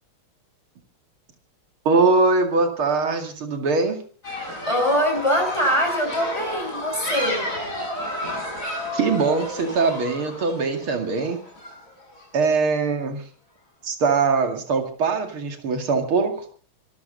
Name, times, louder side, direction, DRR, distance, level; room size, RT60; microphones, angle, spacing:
voice 1, 1.9-4.0 8.9-11.4 12.3-13.2 13.8-16.4, right 4 dB, 85° right, 6 dB, 3.1 m, -22 dB
sound 1, 4.2-12.2, left 1 dB, 35° left, 8.0 m, -31 dB
voice 2, 4.3-7.5, equal, 15° left, 3 dB, 5.4 m, -23 dB
25.5 x 13.5 x 4.0 m, 0.42 s
omnidirectional pair, 2.3 m